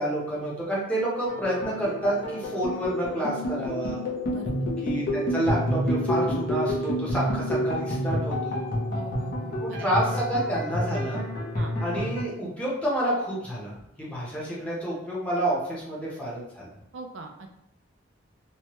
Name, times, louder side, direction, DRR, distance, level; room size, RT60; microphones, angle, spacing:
voice 1, 0.0-4.0 4.8-8.7 9.6-11.2 11.8-16.7, right 1 dB, 5° left, -6 dB, 0.8 m, -29 dB
sound 1, 1.3-12.2, equal, 60° left, 0.8 m, -29 dB
voice 2, 4.2-4.7 8.9-9.9 11.5-11.7 16.9-17.6, right 3 dB, 75° right, 4 dB, 0.4 m, -42 dB
3.1 x 2.2 x 2.9 m, 0.86 s
head